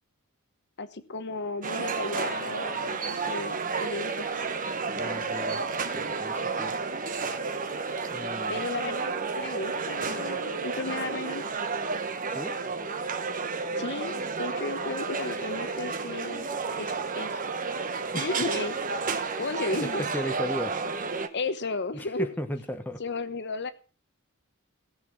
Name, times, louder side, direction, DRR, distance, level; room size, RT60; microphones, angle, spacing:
voice 1, 0.8-4.3 8.5-11.4 13.8-16.5 16.8-17.4 18.1-18.8 19.2-20.1 21.3-22.3 23.0-23.7, left 3 dB, 55° left, 1.1 m, -34 dB
sound 1, 1.6-21.3, right 4 dB, 40° right, 1.2 m, -31 dB
voice 2, 4.9-5.6 5.9-6.8 8.1-8.6 12.3-12.6 18.1-18.3 19.8-20.9 21.9-23.0, equal, 10° left, 1.2 m, -35 dB
16.5 x 7.3 x 6.0 m
head